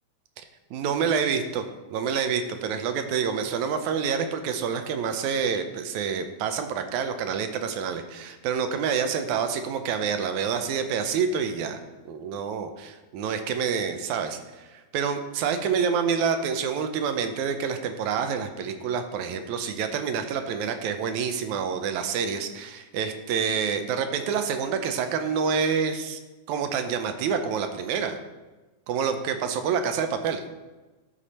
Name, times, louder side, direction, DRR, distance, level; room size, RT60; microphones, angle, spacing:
voice 1, 0.7-1.6 1.9-11.8 12.1-26.2 26.5-28.2 28.9-30.4, right 6 dB, 80° right, 7 dB, 2.0 m, -27 dB
13.0 x 5.1 x 4.2 m, 1.2 s
omnidirectional pair, 3.5 m